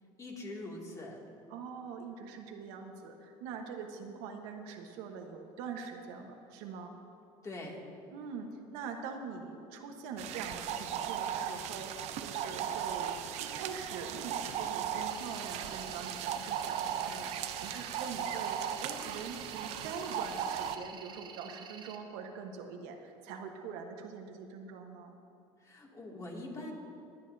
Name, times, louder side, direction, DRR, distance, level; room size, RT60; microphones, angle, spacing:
voice 1, 0.2-1.2 7.4-7.8 25.6-26.7, left 2 dB, 25° left, -2 dB, 2.4 m, -43 dB
voice 2, 1.5-6.9 8.1-25.2, right 5 dB, 90° right, 3 dB, 1.2 m, -43 dB
sound 1, 10.2-20.8, right 9 dB, 65° right, 0.7 m, -37 dB
sound 2, 15.1-22.0, right 6 dB, 40° right, 1.1 m, -50 dB
22.0 x 9.9 x 2.7 m, 2.6 s
cardioid pair, 120°, 12 cm